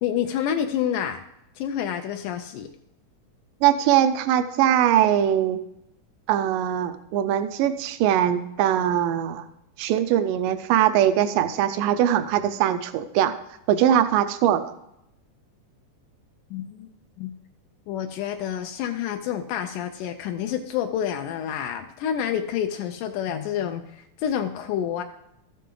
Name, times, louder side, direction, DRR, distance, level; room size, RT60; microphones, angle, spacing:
voice 1, 0.0-1.2 1.6-2.7 16.5-16.9 17.2-17.3 17.9-25.0, left 9 dB, 80° left, 5 dB, 2.1 m, -28 dB
voice 2, 3.6-5.6 6.3-9.4 9.8-13.4 13.7-14.7, right 10 dB, 85° right, 9 dB, 2.3 m, -21 dB
13.5 x 6.9 x 3.8 m, 0.81 s
omnidirectional pair, 3.7 m